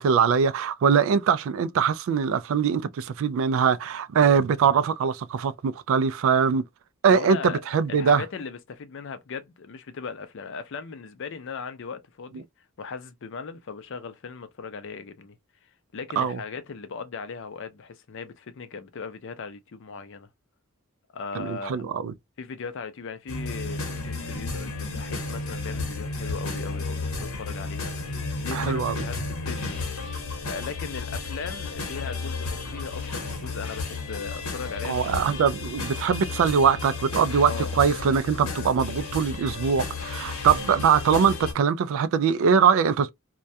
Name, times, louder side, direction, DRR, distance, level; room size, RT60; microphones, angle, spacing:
voice 1, 0.0-6.6 7.0-8.2 16.2-16.4 21.3-22.1 28.5-29.0 34.8-43.1, right 6 dB, 65° right, 0.3 m, -22 dB
voice 2, 7.1-7.6 7.9-12.4 12.8-15.4 15.9-20.3 21.1-21.8 22.4-27.9 28.4-29.8 30.4-35.2 36.3-36.4 37.5-37.7 40.6-40.7, left 5 dB, 60° left, 0.5 m, -38 dB
sound 1, 23.3-41.5, left 3 dB, 80° left, 0.9 m, -33 dB
2.2 x 2.1 x 2.5 m
head